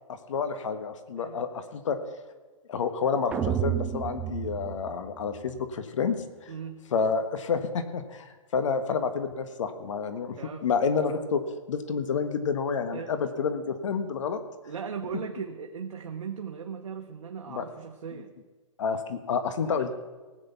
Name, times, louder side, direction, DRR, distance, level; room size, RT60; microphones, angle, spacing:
voice 1, 0.3-2.0 2.7-6.5 6.9-11.4 11.7-14.4 17.5-17.6 18.8-20.0, left 5 dB, 65° left, 9 dB, 1.5 m, -29 dB
sound 1, 3.3-5.6, right 9 dB, 5° right, 0.3 m, -31 dB
voice 2, 6.5-6.8 10.4-10.7 12.9-13.2 14.6-18.3 19.6-19.9, right 6 dB, 85° right, 2 dB, 1.2 m, -38 dB
19.0 x 7.8 x 6.0 m, 1.3 s
hypercardioid pair, 155°, 17 cm